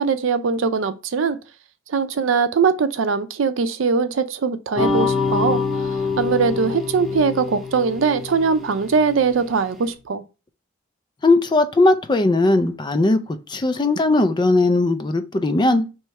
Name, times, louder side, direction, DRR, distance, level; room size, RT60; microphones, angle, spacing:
voice 1, 0.0-1.4 1.9-5.6 6.2-10.2, right 5 dB, 80° right, 0.5 m, -21 dB
sound 1, 4.8-9.6, left 4 dB, ahead, 0.8 m, -25 dB
voice 2, 11.2-15.8, left 2 dB, 25° left, 0.4 m, -18 dB
3.2 x 3.0 x 4.6 m
head